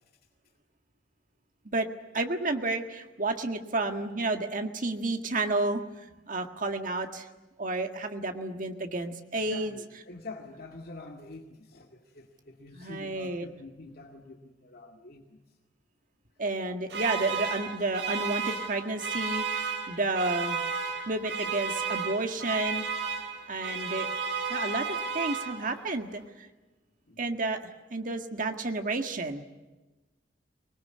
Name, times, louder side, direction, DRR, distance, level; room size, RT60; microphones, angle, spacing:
voice 1, 2.1-7.3 7.6-9.8 12.7-13.5 16.4-20.6 21.1-22.8 23.5-24.1 24.5-26.2 27.2-29.4, right 2 dB, 50° right, 5 dB, 1.8 m, -31 dB
voice 2, 9.4-15.4 27.1-27.3, left 3 dB, 60° left, 1 dB, 2.2 m, -46 dB
sound 1, 16.9-25.9, right 5 dB, 85° right, 3.6 m, -33 dB
24.5 x 20.5 x 9.6 m, 1.2 s
head